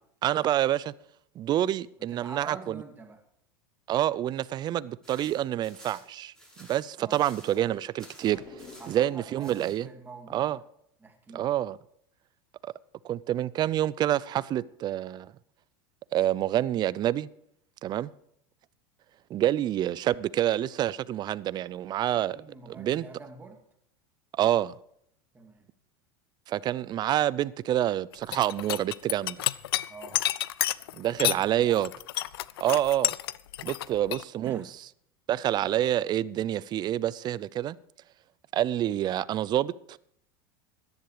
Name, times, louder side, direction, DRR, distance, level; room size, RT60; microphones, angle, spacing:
voice 1, 0.2-0.9 1.4-2.8 3.9-6.3 6.6-8.4 8.9-9.9 10.3-10.6 11.3-11.8 12.6-12.7 13.0-15.3 16.1-17.3 17.8-18.1 19.3-22.4 22.8-23.1 24.4-24.7 26.5-29.4 30.9-31.9 32.6-33.1 33.6-34.6 35.3-37.8 38.5-40.0, right 12 dB, 35° right, 0.5 m, -27 dB
voice 2, 2.0-3.2 7.0-7.2 8.8-10.6 11.0-11.5 22.3-23.6 25.3-25.7 29.9-30.2 31.2-31.9 33.9-34.1 34.4-34.7, right 3 dB, 15° right, 2.5 m, -46 dB
sound 1, 5.0-7.7 8.0-9.0 9.4-9.8, equal, 5° left, 7.1 m, -52 dB
sound 2, 8.2-9.3, left 3 dB, 30° left, 3.5 m, -48 dB
sound 3, 28.1-31.4 31.7-34.2, left 14 dB, 90° left, 0.5 m, -29 dB
14.0 x 10.5 x 4.9 m
supercardioid pair, 115°, 12 cm